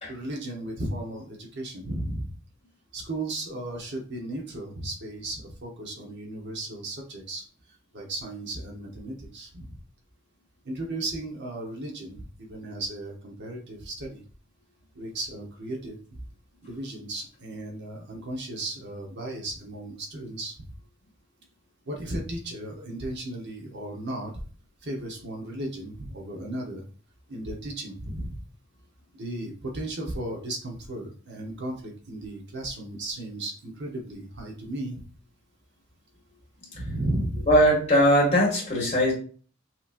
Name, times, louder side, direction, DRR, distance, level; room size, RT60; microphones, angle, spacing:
voice 1, 0.1-2.3 2.9-7.4 7.9-9.7 10.6-14.2 15.0-16.0 16.6-20.5 21.9-24.3 24.8-26.8 27.3-28.3 29.1-35.0 36.7-37.5, right 1 dB, 60° right, 0 dB, 1.1 m, -35 dB
voice 2, 37.5-39.1, equal, 35° left, -4 dB, 2.1 m, -20 dB
5.9 x 3.1 x 2.6 m, 0.41 s
head